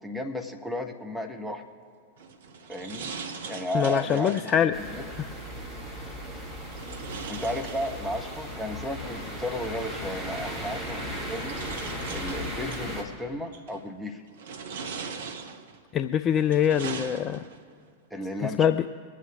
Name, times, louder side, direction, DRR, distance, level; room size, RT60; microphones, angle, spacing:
voice 1, 0.0-1.6 2.7-3.1 3.5-5.0 7.3-11.6 12.1-14.2 18.1-18.8, left 1 dB, ahead, 2 dB, 1.3 m, -34 dB
sound 1, 2.2-4.7 6.7-8.4 9.7-9.8 10.8-12.9 13.5-13.9 14.3-15.8 16.3-17.7, right 5 dB, 60° right, 0.9 m, -40 dB
voice 2, 3.7-4.7 15.9-17.4 18.6-18.8, left 9 dB, 30° left, 10 dB, 0.4 m, -23 dB
sound 2, 4.7-13.0, equal, 15° right, 2.9 m, -36 dB
24.0 x 8.4 x 3.6 m, 2.3 s
figure-of-eight pair, 90°, 0 cm